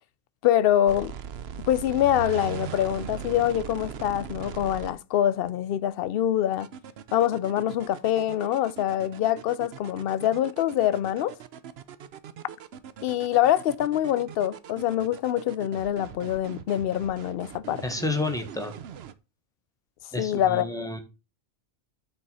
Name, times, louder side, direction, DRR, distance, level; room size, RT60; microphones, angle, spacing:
voice 1, 0.4-1.1 1.7-6.7 7.1-11.3 13.0-17.8 20.2-20.7, left 11 dB, 65° left, 0.7 m, -25 dB
sound 1, 0.9-4.9 6.5-19.1, right 9 dB, 70° right, 0.9 m, -40 dB
voice 2, 17.8-18.7 20.1-21.0, left 2 dB, 5° left, 1.2 m, -30 dB
9.4 x 4.1 x 5.4 m
omnidirectional pair, 1.1 m